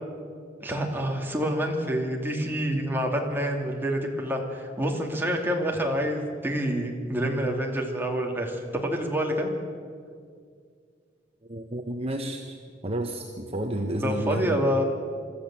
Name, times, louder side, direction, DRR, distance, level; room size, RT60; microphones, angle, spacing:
voice 1, 0.6-9.5 14.0-14.8, equal, 10° right, 0 dB, 2.7 m, -27 dB
voice 2, 11.5-12.6 12.8-14.8, right 1 dB, 35° right, 3 dB, 1.2 m, -31 dB
25.5 x 14.0 x 7.6 m, 2.1 s
head